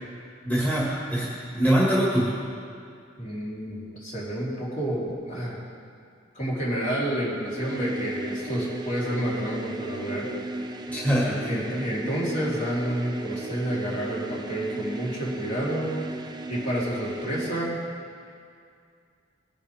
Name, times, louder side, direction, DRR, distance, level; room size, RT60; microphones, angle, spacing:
voice 1, 0.4-2.3 10.9-11.5, equal, 10° left, -7 dB, 2.1 m, -23 dB
voice 2, 3.2-5.6 6.3-10.3 11.2-16.0 16.5-17.8, right 1 dB, 45° left, -7 dB, 3.8 m, -29 dB
sound 1, 7.4-17.8, right 1 dB, 25° right, 0.7 m, -36 dB
20.5 x 10.0 x 3.6 m, 2.3 s
head